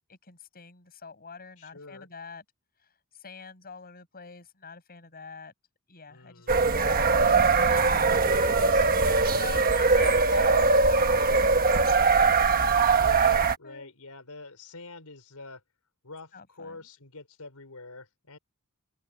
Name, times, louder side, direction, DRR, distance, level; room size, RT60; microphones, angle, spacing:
voice 1, 0.1-2.4 2.8-5.5 5.9-8.2 9.0-12.3 13.6-13.9 16.3-16.8, left 4 dB, 45° left, 6.4 m, -46 dB
voice 2, 1.6-2.1 6.1-6.6 8.2-10.3 12.9-15.6 16.0-18.4, left 3 dB, 90° left, 5.0 m, -45 dB
sound 1, 6.5-13.5, right 4 dB, 40° right, 1.3 m, -21 dB
open air
head